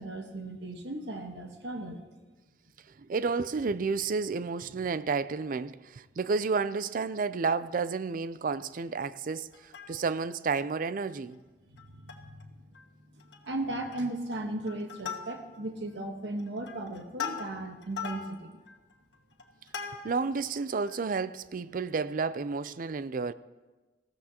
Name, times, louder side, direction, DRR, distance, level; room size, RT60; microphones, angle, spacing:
voice 1, 0.0-2.0 11.7-12.6 13.4-18.6, right 1 dB, 80° right, 1.3 m, -36 dB
voice 2, 3.0-11.4 20.0-23.3, right 4 dB, 50° right, 0.4 m, -31 dB
Plucked string instrument, 9.5-10.3 10.8-10.9 11.1-11.3 11.8-12.4 12.7-12.9 13.2-13.6 13.9-14.3 14.7-15.7 16.2-20.4 20.9-21.0, left 6 dB, 80° left, 1.3 m, -40 dB
20.0 x 15.0 x 2.9 m
head